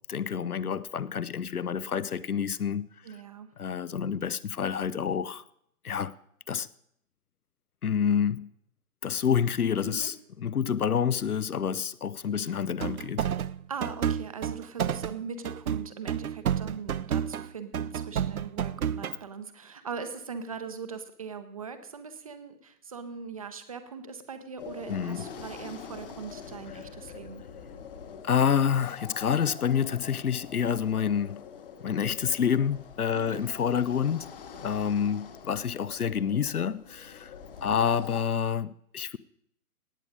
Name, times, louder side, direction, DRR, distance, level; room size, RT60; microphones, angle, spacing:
voice 1, 0.1-2.9 3.6-5.4 5.8-6.1 6.5-6.7 7.8-8.5 9.0-13.3 24.9-25.2 28.2-31.4 31.8-34.3 34.5-37.3 37.6-39.2, left 7 dB, 75° left, 0.7 m, -28 dB
voice 2, 3.0-3.5 9.8-10.1 12.3-12.6 13.7-27.4 33.1-33.4 37.6-37.9, right 5 dB, 25° right, 0.7 m, -40 dB
sound 1, 12.8-15.2 15.4-17.5 17.7-19.2, right 9 dB, 70° right, 0.6 m, -30 dB
sound 2, 24.6-38.2, left 6 dB, 35° left, 1.2 m, -45 dB
18.0 x 8.2 x 5.1 m
figure-of-eight pair, 135°, 45 cm